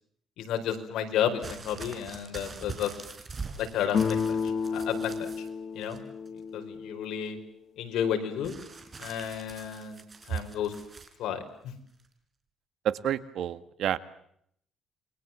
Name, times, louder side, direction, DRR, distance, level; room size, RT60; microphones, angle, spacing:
voice 1, 0.4-2.9 3.6-4.2 4.7-5.4 5.7-6.0 6.5-7.4 7.8-8.5 9.0-10.7 11.2-11.7, left 9 dB, 80° left, 5 dB, 4.9 m, -32 dB
sound 1, 1.4-5.5 5.8-6.4 8.4-11.1 12.0-12.1, right 4 dB, 30° right, 4.6 m, -44 dB
sound 2, 3.9-7.5, left 6 dB, 45° left, 1.5 m, -31 dB
voice 2, 12.8-14.0, right 10 dB, 70° right, 13 dB, 1.7 m, -29 dB
29.0 x 23.5 x 7.4 m, 0.69 s
cardioid pair, 135°, 0 cm